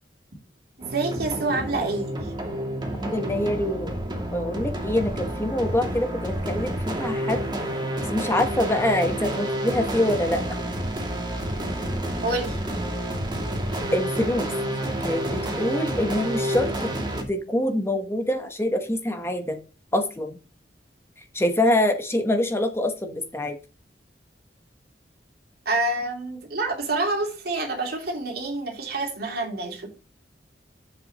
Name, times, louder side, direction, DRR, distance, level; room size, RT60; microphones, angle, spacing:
sound 1, 0.8-17.2, right 1 dB, 25° right, 2.4 m, -29 dB
voice 1, 0.8-2.3 11.4-11.5 12.2-12.6 25.6-29.9, right 2 dB, 60° right, 3.1 m, -27 dB
voice 2, 3.0-3.9 4.3-7.4 8.1-10.4 13.9-14.5 15.0-16.7 17.3-19.6 19.9-20.3 21.3-23.6, left 1 dB, 15° left, 1.1 m, -25 dB
10.5 x 7.6 x 3.0 m
head